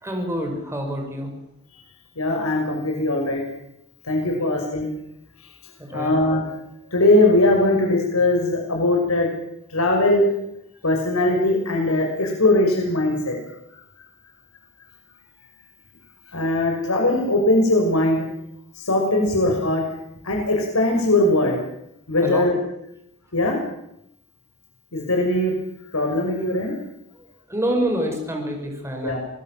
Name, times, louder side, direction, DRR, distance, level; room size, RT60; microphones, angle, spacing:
voice 1, 0.0-1.3 4.4-4.5 5.8-6.2 22.2-22.4 27.5-29.2, right 1 dB, 15° right, 2 dB, 5.9 m, -26 dB
voice 2, 2.2-3.4 4.1-4.9 5.9-6.4 6.9-9.3 9.7-10.3 10.8-13.3 16.3-18.3 18.8-19.8 20.2-21.6 22.1-22.6 23.3-23.6 24.9-25.5 25.9-26.7 29.0-29.2, left 1 dB, 90° left, 1 dB, 6.3 m, -20 dB
27.0 x 20.0 x 7.7 m, 0.80 s
head